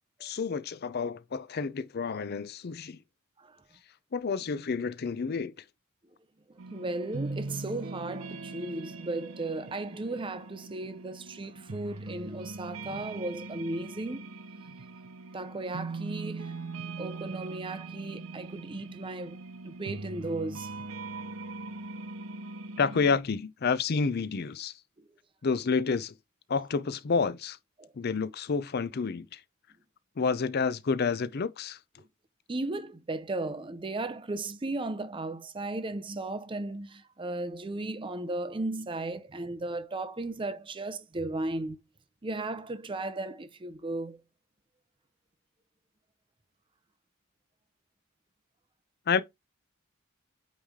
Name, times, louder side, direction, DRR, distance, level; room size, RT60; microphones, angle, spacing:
voice 1, 0.2-3.0 4.1-5.5 22.8-24.7 25.4-26.1 26.5-27.6 28.0-29.4 30.2-31.8 49.1-49.2, left 5 dB, 50° left, 0.5 m, -29 dB
voice 2, 6.5-14.4 15.3-16.6 17.0-20.7 27.8-27.9 32.5-41.8 42.2-44.2, right 2 dB, 25° right, 0.5 m, -35 dB
sound 1, 6.6-23.2, right 3 dB, 75° right, 0.7 m, -41 dB
8.8 x 3.2 x 3.6 m
head